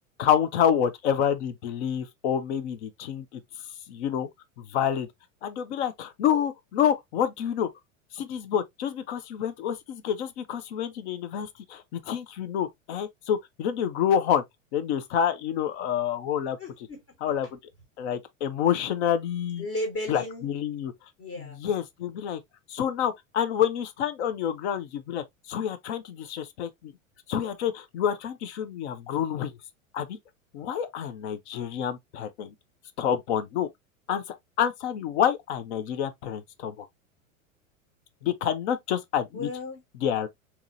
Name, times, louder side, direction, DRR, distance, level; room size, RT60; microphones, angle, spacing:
voice 1, 0.2-3.4 3.9-4.3 4.6-5.1 5.4-7.7 8.1-14.4 14.7-16.6 17.2-17.6 18.0-19.6 20.1-20.9 21.6-22.4 22.7-26.9 27.3-29.6 29.9-30.2 30.5-32.5 33.0-33.7 34.1-34.2 34.6-36.9 38.2-39.5 40.0-40.3, left 9 dB, 55° left, 0.7 m, -28 dB
voice 2, 16.6-17.2 17.4-17.5 19.6-20.5 21.2-21.6 39.3-39.8, left 1 dB, 40° left, 1.4 m, -35 dB
3.6 x 2.9 x 2.5 m
figure-of-eight pair, 85°, 41 cm